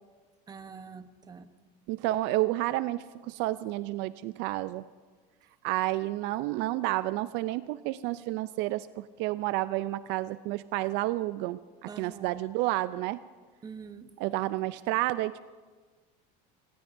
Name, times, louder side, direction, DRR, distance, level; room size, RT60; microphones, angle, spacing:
voice 1, 0.5-1.5 11.9-12.4 13.6-14.1, right 5 dB, 20° right, 10 dB, 0.9 m, -45 dB
voice 2, 1.9-4.8 5.6-13.2 14.2-15.4, right 17 dB, 65° right, 15 dB, 0.4 m, -30 dB
24.5 x 20.5 x 2.6 m, 1.4 s
supercardioid pair, 130°, 20 cm